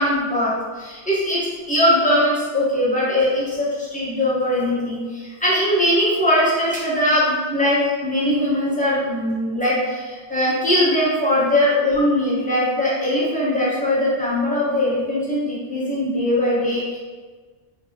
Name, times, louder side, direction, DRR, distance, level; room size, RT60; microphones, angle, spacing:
voice 1, 0.0-17.0, left 1 dB, 5° left, -9 dB, 1.1 m, -20 dB
3.4 x 2.7 x 3.8 m, 1.4 s
omnidirectional pair, 1.2 m